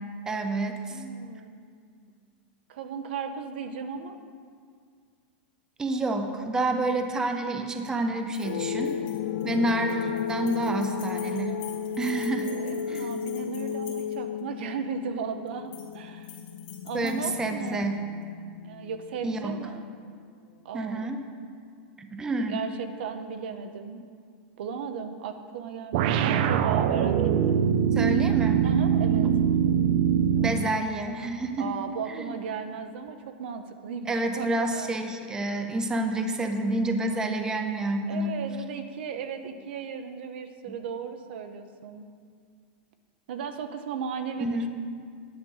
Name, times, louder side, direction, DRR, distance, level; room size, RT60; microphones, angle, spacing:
voice 1, 0.3-1.0 5.8-9.0 9.4-11.6 12.0-12.5 12.9-13.2 16.9-18.0 19.2-19.6 20.7-21.2 22.0-22.6 28.0-28.6 30.3-31.7 32.1-32.4 34.1-38.3 44.4-44.7, right 2 dB, 10° right, 5 dB, 0.6 m, -28 dB
voice 2, 0.9-1.6 2.7-4.2 12.4-16.3 16.8-17.9 18.6-19.9 20.6-21.1 22.5-24.0 24.6-27.6 28.6-29.3 31.6-34.9 38.1-42.0 43.3-44.7, right 6 dB, 75° right, 7 dB, 0.9 m, -36 dB
sound 1, 8.3-14.4 15.5-16.0 16.2-17.8, left 8 dB, 50° left, 2.1 m, -49 dB
sound 2, 8.4-19.4, left 8 dB, 80° left, 0.5 m, -34 dB
sound 3, 25.9-30.7, right 8 dB, 55° right, 0.5 m, -23 dB
9.8 x 8.1 x 5.6 m, 2.1 s
supercardioid pair, 150°, 6 cm